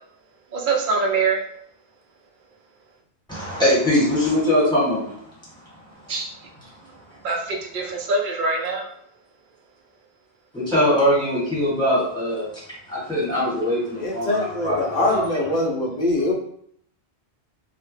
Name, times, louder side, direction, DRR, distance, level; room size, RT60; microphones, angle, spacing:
voice 1, 0.5-1.4 6.1-6.2 7.2-7.4 7.7-8.9, right 3 dB, 60° right, 0 dB, 0.6 m, -23 dB
voice 2, 3.3-5.2 10.5-12.6 12.9-15.3, left 1 dB, 5° left, -9 dB, 1.1 m, -22 dB
voice 3, 14.0-16.3, left 2 dB, 55° left, 0 dB, 0.5 m, -23 dB
2.1 x 2.1 x 3.1 m, 0.65 s
omnidirectional pair, 1.1 m